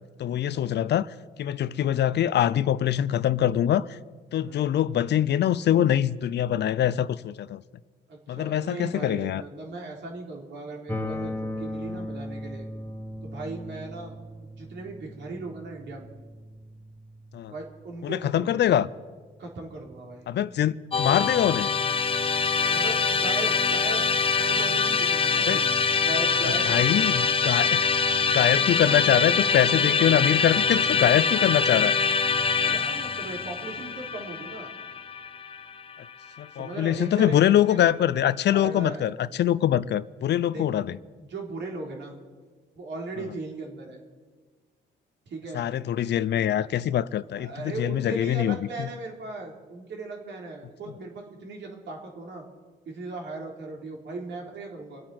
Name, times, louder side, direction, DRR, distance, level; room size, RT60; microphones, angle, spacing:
voice 1, 0.2-1.1 1.4-4.0 4.3-7.6 8.3-9.4 17.3-17.5 18.0-18.9 20.3-21.7 25.5-25.6 26.6-27.9 28.3-31.9 36.4-41.0 45.5-48.9, left 11 dB, 60° left, 0.5 m, -24 dB
voice 2, 4.3-4.7 8.1-11.3 11.6-12.7 13.2-14.2 14.6-16.1 17.5-18.9 19.4-20.3 22.6-25.7 26.0-27.5 32.7-34.7 36.6-37.4 37.7-37.8 38.5-39.1 40.4-40.6 41.2-42.1 42.7-44.0 45.3-45.6 47.3-52.4 52.9-55.0, right 2 dB, 65° right, 3.7 m, -38 dB
sound 1, 10.9-20.8, left 1 dB, 10° left, 1.3 m, -39 dB
Musical instrument, 20.9-36.1, left 5 dB, 25° left, 0.9 m, -24 dB
26.0 x 8.8 x 6.0 m
cardioid pair, 90°, 20 cm